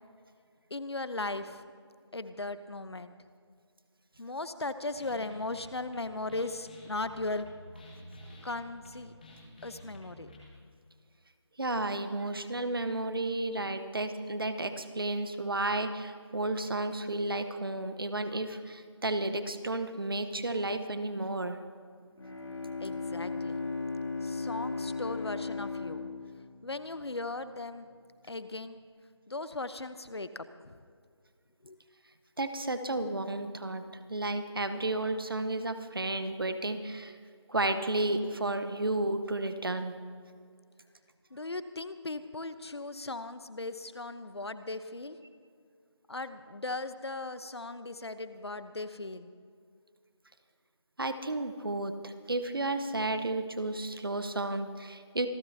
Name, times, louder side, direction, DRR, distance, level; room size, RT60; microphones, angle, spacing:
voice 1, 0.7-1.6 2.1-3.1 4.2-7.5 8.4-9.1 9.6-10.3 22.8-23.6 24.2-26.1 26.6-27.9 28.3-28.8 29.3-30.8 31.6-31.8 41.3-45.2 46.1-49.3, left 2 dB, 60° left, 12 dB, 0.9 m, -38 dB
sound 1, 5.0-10.5, left 1 dB, 20° left, 1.7 m, -51 dB
voice 2, 11.6-21.6 32.4-33.8 34.1-37.1 37.5-39.9 51.0-55.3, right 2 dB, 50° right, 10 dB, 1.0 m, -32 dB
Bowed string instrument, 22.2-27.4, left 4 dB, 85° left, 3.1 m, -36 dB
27.0 x 13.0 x 2.8 m, 2.1 s
figure-of-eight pair, 175°, 15 cm